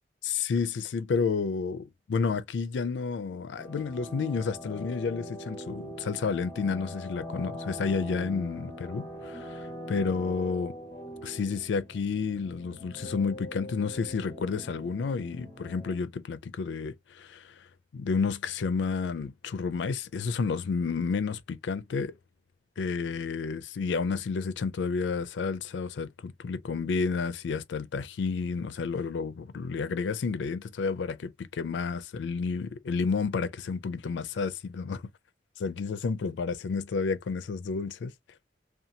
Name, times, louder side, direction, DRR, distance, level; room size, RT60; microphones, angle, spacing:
voice 1, 0.2-10.7 11.2-17.7 17.9-22.1 22.8-35.0 35.6-38.1, left 5 dB, 90° left, 0.4 m, -31 dB
sound 1, 3.6-15.9, equal, 20° left, 0.8 m, -42 dB
2.7 x 2.3 x 2.6 m
head